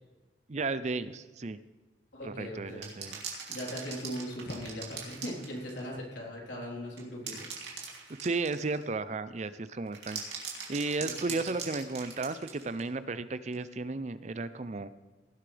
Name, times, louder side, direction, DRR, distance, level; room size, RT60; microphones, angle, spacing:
voice 1, 0.5-1.6 2.2-3.2 8.2-10.2 10.7-14.9, right 3 dB, 35° right, 13 dB, 0.5 m, -34 dB
voice 2, 2.1-2.8 3.5-7.3 11.0-11.5, equal, 75° left, -3 dB, 3.9 m, -39 dB
sound 1, 2.7-5.9 7.0-8.9 9.9-12.9 13.5-13.6, right 6 dB, 60° right, 2.9 m, -41 dB
sound 2, 3.7-9.7, left 1 dB, 50° left, 1.3 m, -55 dB
18.0 x 11.5 x 3.4 m, 1.3 s
head